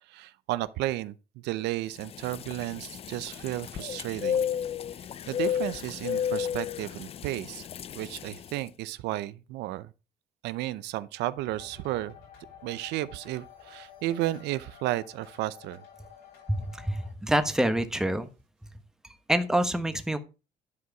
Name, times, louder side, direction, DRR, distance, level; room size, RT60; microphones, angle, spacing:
voice 1, 0.1-4.4 5.0-7.7 7.9-9.9 10.4-12.1 12.6-15.8, right 15 dB, 85° right, 0.6 m, -33 dB
sound 1, 2.0-8.6, left 8 dB, 35° left, 0.4 m, -33 dB
sound 2, 11.4-17.1, left 8 dB, 85° left, 7.0 m, -51 dB
voice 2, 16.5-18.3 19.3-20.2, right 1 dB, 5° right, 1.2 m, -26 dB
11.0 x 4.8 x 5.7 m
cardioid pair, 110°, 17 cm